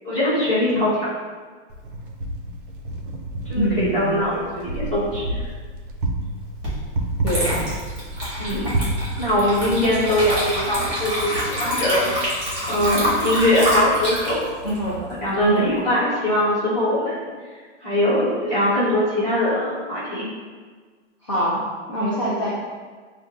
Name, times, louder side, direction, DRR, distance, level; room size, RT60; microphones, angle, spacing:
voice 1, 0.0-0.9 3.4-5.4 8.4-8.7 9.2-12.1 12.7-14.4 15.2-17.2 17.8-20.3, left 1 dB, 15° left, -13 dB, 1.3 m, -21 dB
Wind, 1.7-10.6, right 2 dB, 45° right, 0.5 m, -30 dB
voice 2, 3.5-4.3 7.2-7.5 14.6-15.0 15.4-15.7 21.2-22.5, right 1 dB, 30° left, -8 dB, 0.4 m, -24 dB
Water / Liquid, 6.6-6.8 7.2-15.8, equal, 10° right, 1.2 m, -26 dB
6.6 x 2.4 x 2.4 m, 1.5 s
hypercardioid pair, 180°, 36 cm